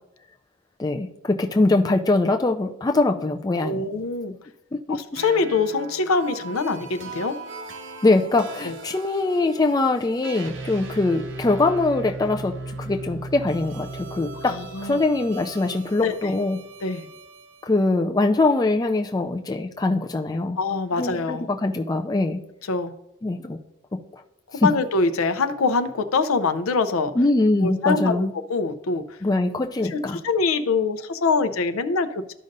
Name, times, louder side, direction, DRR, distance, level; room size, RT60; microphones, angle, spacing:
voice 1, 0.8-3.9 4.9-5.0 8.0-14.5 14.8-16.6 17.6-20.6 21.0-22.4 23.2-23.6 23.9-24.0 24.6-24.7 27.2-28.3 29.2-30.2, left 2 dB, 20° left, 4 dB, 0.3 m, -22 dB
voice 2, 3.6-4.3 4.9-7.4 8.6-8.7 14.5-15.0 16.0-16.4 16.8-17.1 20.6-21.5 22.7-22.9 24.5-27.1 27.6-28.2 28.5-29.2 29.8-32.3, left 4 dB, 80° left, 10 dB, 0.6 m, -24 dB
sound 1, 5.2-17.7, right 2 dB, 60° right, 0.8 m, -38 dB
13.0 x 5.3 x 2.6 m, 0.85 s
head